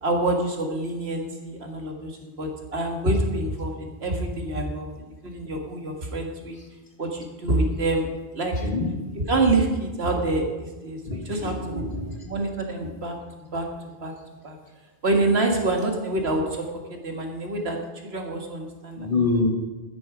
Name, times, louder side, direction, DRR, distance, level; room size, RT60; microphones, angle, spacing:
voice 1, 0.0-3.7 4.0-6.6 7.0-8.1 8.3-8.6 9.2-11.9 12.2-13.1 13.5-13.7 14.0-14.1 14.4-14.6 15.0-17.8 18.1-19.1, right 2 dB, 90° right, 2 dB, 2.1 m, -26 dB
voice 2, 11.1-12.2 19.0-19.5, left 3 dB, 55° left, 1 dB, 2.3 m, -26 dB
13.0 x 9.8 x 5.0 m, 1.2 s
omnidirectional pair, 1.0 m